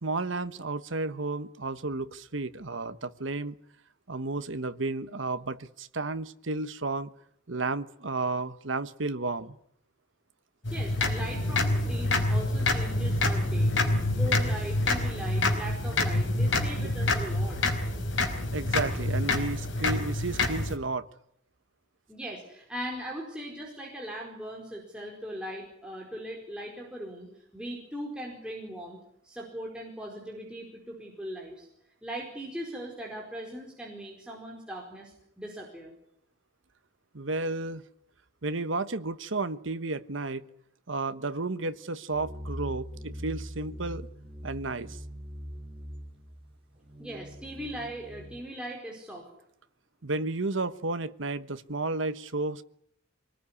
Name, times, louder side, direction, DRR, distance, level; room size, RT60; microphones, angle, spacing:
voice 1, 0.0-3.6 4.1-7.1 7.5-9.6 18.5-21.1 37.1-37.8 38.4-40.4 40.9-44.1 44.4-45.0 50.0-52.6, right 3 dB, 75° right, 1.2 m, -32 dB
sound 1, 10.6-20.8, left 2 dB, 70° left, 4.4 m, -27 dB
voice 2, 10.7-17.6 22.1-31.7 32.0-35.9 47.0-49.3, equal, 5° right, 4.8 m, -39 dB
sound 2, 42.1-48.4, equal, 30° right, 5.6 m, -42 dB
25.0 x 19.5 x 9.9 m
head